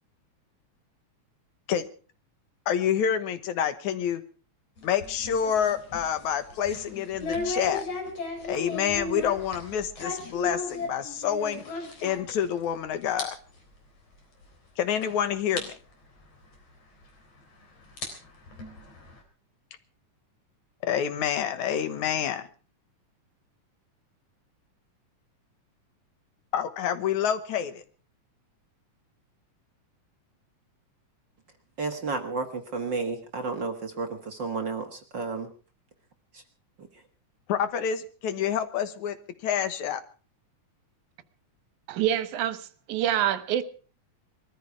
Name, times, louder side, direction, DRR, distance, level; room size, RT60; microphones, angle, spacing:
voice 1, 2.7-4.2 4.8-7.8 8.4-11.6 12.0-13.4 14.8-15.7 20.9-22.5 26.5-27.8 37.5-39.2 39.4-40.0, left 8 dB, 80° left, 2.6 m, -28 dB
sound 1, 4.8-12.7 13.0-13.3 13.6-13.7 14.4-14.5 15.0-15.1 15.6-15.7 17.0-17.1 17.8-19.2, left 3 dB, 55° left, 4.9 m, -35 dB
voice 2, 31.8-35.5 36.3-36.4 36.8-37.0, right 4 dB, 45° right, 1.7 m, -32 dB
voice 3, 41.9-43.6, right 11 dB, 80° right, 2.6 m, -26 dB
21.5 x 14.0 x 4.7 m
omnidirectional pair, 3.4 m